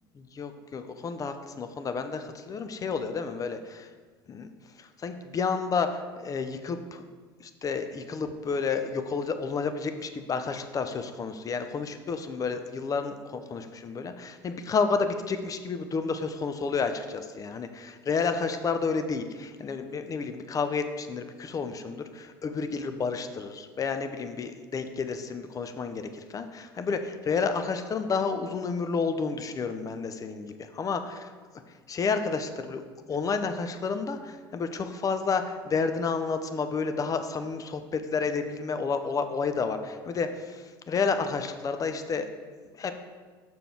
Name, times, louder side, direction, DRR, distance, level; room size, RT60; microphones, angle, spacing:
voice 1, 0.2-3.9 4.3-4.5 4.8-7.0 7.4-31.3 31.9-32.8 33.1-42.3 42.7-42.9, left 5 dB, 25° left, 9 dB, 0.6 m, -30 dB
6.7 x 5.9 x 3.7 m, 1.5 s
figure-of-eight pair, 70°, 13 cm